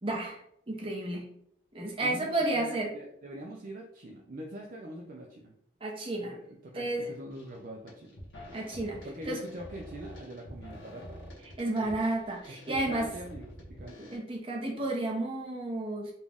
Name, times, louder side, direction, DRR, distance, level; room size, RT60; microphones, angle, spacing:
voice 1, 0.0-0.4 0.7-1.2 1.7-2.9 5.8-6.3 6.7-7.0 8.5-9.0 9.2-9.4 11.6-13.1 14.1-16.1, right 2 dB, 30° right, -1 dB, 0.8 m, -31 dB
voice 2, 2.0-5.5 6.2-8.2 9.0-11.2 11.8-12.0 12.5-14.1, right 1 dB, 45° right, -1 dB, 0.4 m, -43 dB
sound 1, 7.3-7.6 7.9-14.2, equal, 75° left, 1.1 m, -47 dB
4.1 x 2.3 x 3.5 m, 0.73 s
head